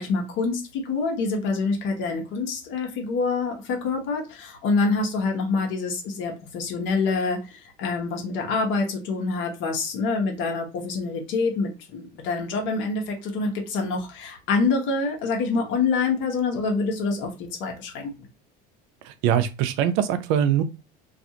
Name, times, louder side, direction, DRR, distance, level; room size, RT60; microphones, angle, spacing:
voice 1, 0.0-18.1, left 4 dB, 65° left, 1.0 m, -26 dB
voice 2, 19.0-20.6, right 9 dB, 75° right, 0.5 m, -22 dB
2.5 x 2.4 x 2.8 m
supercardioid pair, 115°, 21 cm